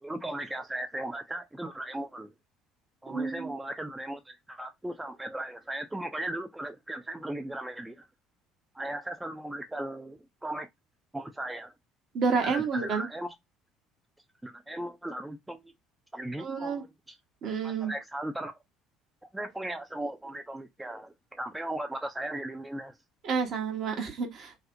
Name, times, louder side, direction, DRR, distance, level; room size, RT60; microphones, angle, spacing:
voice 1, 0.0-2.3 3.0-8.1 8.7-10.7 11.1-11.7 12.4-13.3 14.4-15.7 16.1-17.2 17.6-18.5 19.3-23.0, right 1 dB, 10° right, 0.3 m, -37 dB
voice 2, 3.1-3.5 12.1-13.1 16.4-16.8 17.4-17.9 23.2-24.6, right 5 dB, 50° right, 0.8 m, -30 dB
2.6 x 2.0 x 2.5 m
figure-of-eight pair, 60°, 0 cm